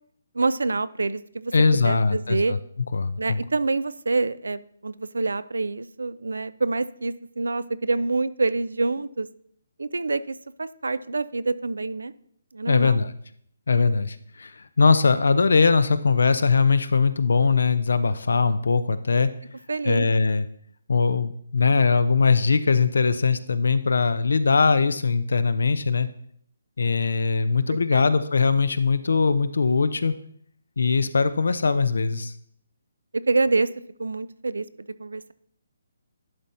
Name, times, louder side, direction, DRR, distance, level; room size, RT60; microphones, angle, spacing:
voice 1, 0.3-2.5 3.2-9.3 9.8-12.1 12.5-13.0 19.7-20.1 27.9-28.1 33.3-33.7 34.0-34.6 35.0-35.3, right 3 dB, 85° right, 16 dB, 0.4 m, -26 dB
voice 2, 1.5-2.6 2.9-3.4 12.7-13.1 13.7-19.3 19.9-20.4 20.9-26.1 26.8-30.1 30.8-32.3, left 4 dB, 75° left, 13 dB, 0.6 m, -21 dB
11.0 x 4.1 x 4.3 m, 0.65 s
hypercardioid pair, 155°, 0 cm